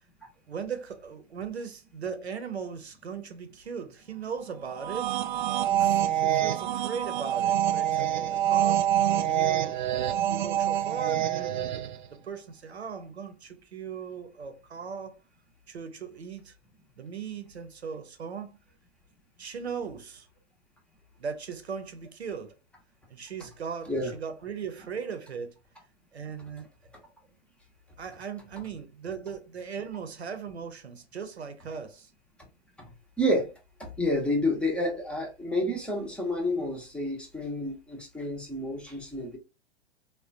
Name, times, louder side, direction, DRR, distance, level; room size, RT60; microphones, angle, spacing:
voice 1, 0.5-5.2 5.7-8.9 9.3-9.9 10.2-15.2 15.7-16.6 17.0-18.6 19.4-20.3 21.2-22.5 23.1-25.6 26.1-26.7 28.0-32.1, right 6 dB, 80° right, 0.7 m, -38 dB
sound 1, 4.7-12.1, right 11 dB, 50° right, 0.4 m, -26 dB
voice 2, 33.2-33.5 33.8-39.4, left 1 dB, 5° left, 0.6 m, -29 dB
3.6 x 2.2 x 2.5 m
figure-of-eight pair, 110°, 32 cm